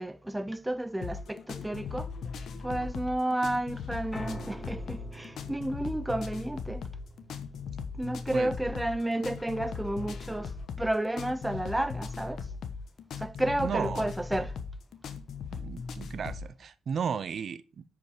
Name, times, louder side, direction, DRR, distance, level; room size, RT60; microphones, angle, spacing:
voice 1, 0.0-2.1 2.6-6.9 7.9-12.5 13.2-14.6, right 1 dB, 10° right, 0.5 m, -31 dB
sound 1, 1.0-16.5, left 5 dB, 65° left, 1.1 m, -39 dB
Piano, 4.1-10.3, right 1 dB, 15° left, 2.8 m, -48 dB
voice 2, 13.6-14.1 15.5-17.8, right 7 dB, 50° right, 0.6 m, -34 dB
9.3 x 4.9 x 5.0 m
cardioid pair, 90°, 0 cm